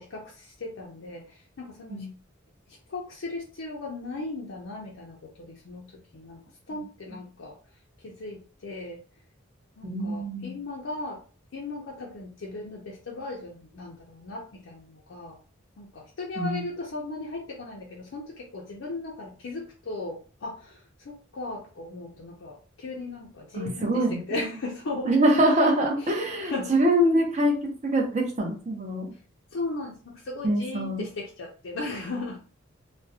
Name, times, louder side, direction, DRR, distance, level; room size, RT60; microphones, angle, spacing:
voice 1, 0.0-2.1 2.7-5.9 6.1-6.4 6.7-7.6 8.0-9.0 9.8-11.2 11.5-15.4 15.8-25.2 26.0-26.7 29.5-32.4, left 2 dB, 75° left, -2 dB, 0.5 m, -37 dB
voice 2, 9.8-10.5 16.4-16.6 23.5-24.2 25.1-29.1 30.4-31.1, right 1 dB, 35° right, 0 dB, 0.7 m, -24 dB
2.4 x 2.1 x 2.6 m, 0.38 s
head